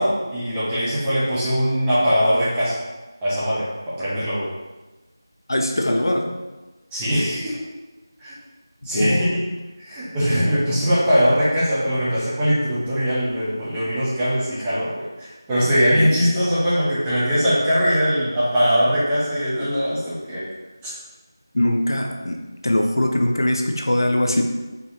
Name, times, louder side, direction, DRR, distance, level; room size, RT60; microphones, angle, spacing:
voice 1, 0.0-2.8 3.2-4.5 6.9-7.6 8.2-8.4 8.8-9.4 9.8-20.4 20.8-20.9, equal, 10° right, -11 dB, 0.5 m, -21 dB
voice 2, 5.5-6.3 8.9-9.3 15.9-16.5 21.5-24.4, left 1 dB, 75° left, 3 dB, 0.5 m, -22 dB
4.1 x 2.8 x 2.6 m, 1.2 s
figure-of-eight pair, 175°, 2 cm